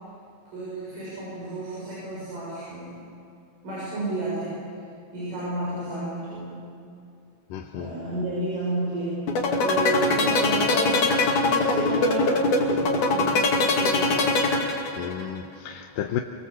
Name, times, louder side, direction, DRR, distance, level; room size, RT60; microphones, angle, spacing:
voice 1, 0.5-3.1 3.6-4.8 5.1-6.7 7.7-9.2 9.6-14.2, right 2 dB, 75° right, -7 dB, 8.8 m, -31 dB
voice 2, 7.5-7.9 14.7-16.2, left 10 dB, 85° left, 3 dB, 2.6 m, -33 dB
sound 1, 9.3-15.2, left 3 dB, 65° left, 3.9 m, -22 dB
26.0 x 25.0 x 7.3 m, 2.5 s
omnidirectional pair, 3.8 m